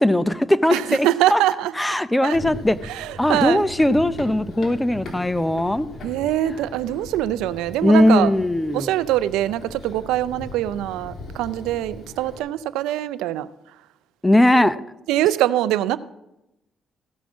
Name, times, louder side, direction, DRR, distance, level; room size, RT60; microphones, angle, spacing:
voice 1, 0.0-1.4 1.8-2.8 3.2-5.9 7.8-8.9 14.2-14.8, left 1 dB, 10° left, 0.6 m, -19 dB
voice 2, 0.7-1.7 2.2-2.4 2.8-3.6 6.0-8.3 8.7-13.5 14.5-14.7 15.1-16.0, right 13 dB, 90° right, 0.4 m, -23 dB
Run, 2.3-12.4, left 1 dB, 55° left, 2.8 m, -38 dB
15.5 x 6.1 x 6.0 m
cardioid pair, 75°, 0 cm